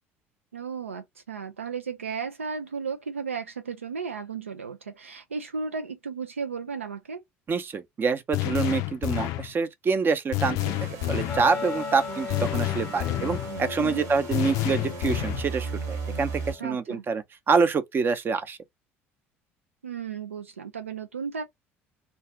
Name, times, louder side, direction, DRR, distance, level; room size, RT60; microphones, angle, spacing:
voice 1, 0.5-7.2 13.8-14.1 16.6-17.0 19.8-21.4, right 5 dB, 80° right, 0.3 m, -34 dB
voice 2, 7.5-10.6 11.1-18.6, right 5 dB, 30° right, 0.6 m, -26 dB
sound 1, 8.3-9.5 10.3-11.5 12.3-13.5 14.3-15.5, left 18 dB, 55° left, 0.3 m, -29 dB
sound 2, 10.6-16.5, right 4 dB, 55° right, 1.1 m, -37 dB
sound 3, 11.3-16.6, left 6 dB, 15° left, 0.9 m, -38 dB
2.5 x 2.3 x 3.0 m
figure-of-eight pair, 60°, 7 cm